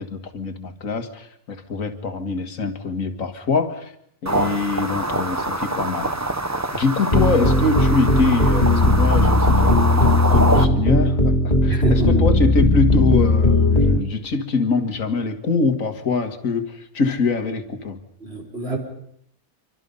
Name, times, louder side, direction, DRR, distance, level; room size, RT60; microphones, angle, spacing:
voice 1, 0.0-3.9 4.2-6.1 6.7-18.0, left 4 dB, 65° left, 6 dB, 2.2 m, -24 dB
sound 1, 4.3-10.7, right 2 dB, 15° right, 0.8 m, -25 dB
sound 2, 7.1-14.0, left 2 dB, 30° left, 2.9 m, -17 dB
voice 2, 11.7-12.3 18.2-18.8, right 3 dB, 45° right, -1 dB, 4.9 m, -25 dB
26.0 x 25.0 x 5.5 m, 0.72 s
omnidirectional pair, 1.5 m